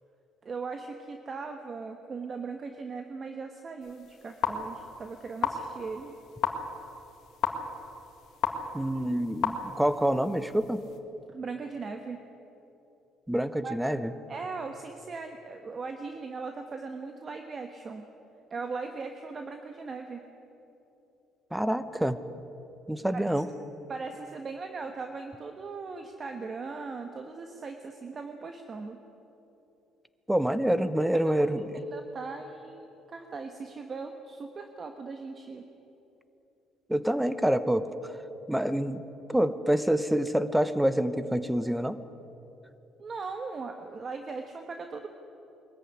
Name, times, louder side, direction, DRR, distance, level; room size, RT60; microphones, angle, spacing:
voice 1, 0.4-6.2 11.3-12.2 13.6-13.9 14.3-18.1 18.5-20.3 23.1-23.2 23.9-29.0 31.1-31.3 31.7-35.7 43.0-45.1, right 4 dB, 35° right, 5 dB, 1.3 m, -39 dB
sound 1, 3.8-11.0, left 7 dB, 65° left, 1.8 m, -35 dB
voice 2, 8.7-10.8 13.3-14.1 21.5-22.2 22.9-23.5 30.3-31.8 36.9-37.9 38.5-39.0 39.3-42.0, right 1 dB, 5° right, 13 dB, 1.0 m, -27 dB
22.0 x 14.0 x 9.7 m, 3.0 s
cardioid pair, 110°, 0 cm